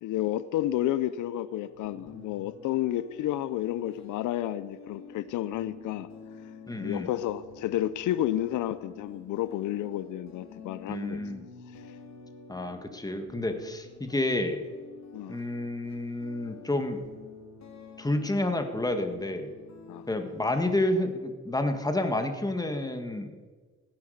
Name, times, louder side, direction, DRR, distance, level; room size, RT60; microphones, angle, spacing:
voice 1, 0.0-6.1 6.8-11.2 11.7-11.9 15.1-15.4 19.9-20.1, left 13 dB, 85° left, 15 dB, 0.6 m, -31 dB
sound 1, 1.5-20.5, left 4 dB, 60° left, 3.2 m, -50 dB
voice 2, 6.7-7.1 10.9-11.4 12.5-14.6 15.3-17.0 18.0-19.5 20.1-23.4, left 1 dB, 10° left, 6 dB, 1.9 m, -29 dB
16.5 x 9.8 x 6.6 m, 1.4 s
cardioid pair, 90°, 30 cm